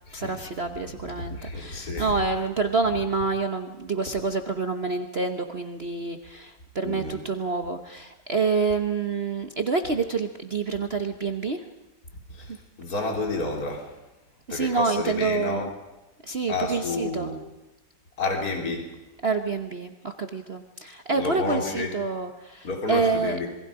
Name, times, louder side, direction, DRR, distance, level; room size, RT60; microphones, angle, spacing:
voice 1, 0.1-11.7 14.5-15.7 16.2-17.3 19.2-23.4, right 4 dB, 40° right, 6 dB, 1.2 m, -27 dB
voice 2, 1.2-2.1 6.8-7.2 12.3-13.9 14.5-15.7 16.5-17.4 18.2-18.9 21.1-21.9 22.6-23.5, left 3 dB, 50° left, 2 dB, 3.8 m, -30 dB
27.5 x 22.0 x 5.0 m, 1.0 s
omnidirectional pair, 2.0 m